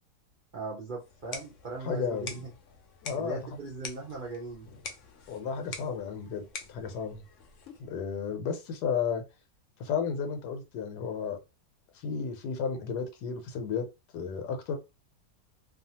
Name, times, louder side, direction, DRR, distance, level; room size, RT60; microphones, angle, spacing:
voice 1, 0.5-2.5 3.2-4.7, right 3 dB, 65° right, 0.5 m, -39 dB
sound 1, 1.0-8.0, left 5 dB, 65° left, 0.8 m, -46 dB
voice 2, 1.8-2.4 3.0-3.4 5.3-7.2 7.8-9.2 9.8-11.4 11.9-13.9 14.1-14.8, left 6 dB, 80° left, 1.2 m, -33 dB
2.7 x 2.4 x 2.7 m
omnidirectional pair, 1.7 m